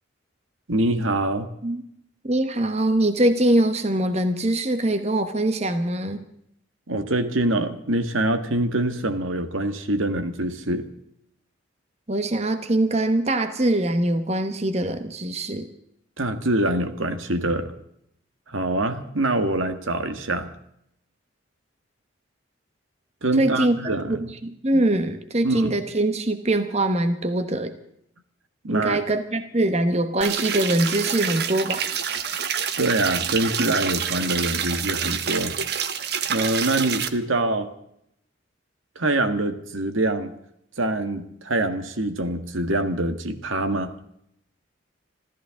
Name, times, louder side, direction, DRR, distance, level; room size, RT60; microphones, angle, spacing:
voice 1, 0.7-1.5 6.9-10.9 16.2-17.7 18.5-20.5 23.2-24.2 24.7-24.8 25.4-25.8 28.6-29.0 32.8-35.5 36.3-37.7 39.0-40.4 40.8-43.9, right 2 dB, 85° right, 8 dB, 1.7 m, -24 dB
voice 2, 2.2-6.2 12.1-15.7 23.4-27.7 28.7-31.9, right 1 dB, 35° right, 9 dB, 1.1 m, -23 dB
sound 1, 30.2-37.1, right 7 dB, 55° right, 1.1 m, -27 dB
26.5 x 14.0 x 3.8 m, 0.73 s
head